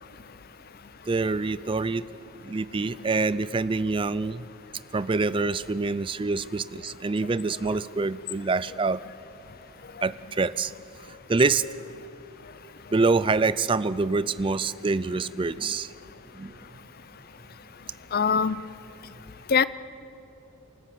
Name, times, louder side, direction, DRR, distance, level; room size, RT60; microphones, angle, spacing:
voice 1, 1.1-2.1 2.4-4.4 4.9-9.0 10.0-10.7 11.3-11.6 12.9-15.9 16.3-16.5, right 3 dB, 20° right, 17 dB, 0.4 m, -26 dB
voice 2, 18.1-18.6 19.5-19.6, left 6 dB, 40° left, 17 dB, 0.5 m, -21 dB
29.0 x 13.0 x 7.6 m, 3.0 s
head